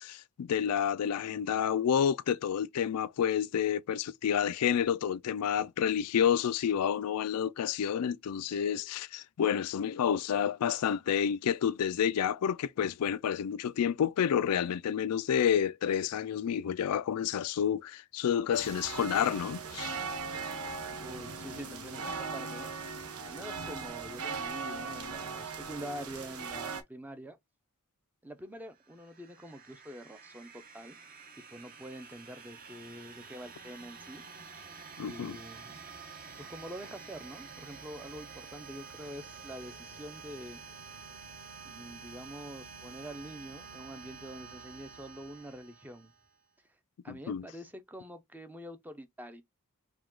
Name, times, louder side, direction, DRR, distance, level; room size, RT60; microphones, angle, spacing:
voice 1, 0.0-19.9 35.0-35.4 47.1-47.5, left 8 dB, 85° left, 0.4 m, -29 dB
sound 1, 18.5-26.8, right 4 dB, 75° right, 1.0 m, -39 dB
voice 2, 21.0-22.7 23.2-27.4 28.2-31.0 31.4-34.2 35.0-35.8 36.4-40.6 41.6-46.1 47.0-49.4, equal, 10° right, 0.6 m, -46 dB
sound 2, 28.7-46.3, right 5 dB, 40° right, 1.0 m, -49 dB
4.8 x 2.3 x 3.7 m
head